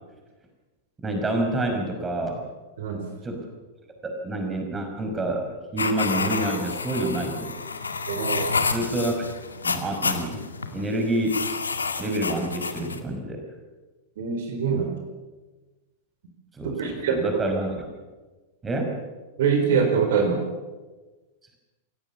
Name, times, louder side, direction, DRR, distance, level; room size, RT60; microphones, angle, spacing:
voice 1, 1.0-2.5 3.2-3.4 4.0-7.5 8.7-9.1 9.6-10.4 10.7-11.4 12.0-13.4 16.5-17.7 18.6-19.0, right 1 dB, 15° right, 4 dB, 5.5 m, -28 dB
voice 2, 2.8-3.1 8.1-8.5 14.2-15.0 16.6-17.2 19.4-20.4, right 6 dB, 55° right, 5 dB, 4.5 m, -24 dB
sound 1, 5.8-13.0, left 4 dB, 75° left, 2.1 m, -29 dB
28.5 x 17.5 x 7.1 m, 1.2 s
figure-of-eight pair, 95°, 0 cm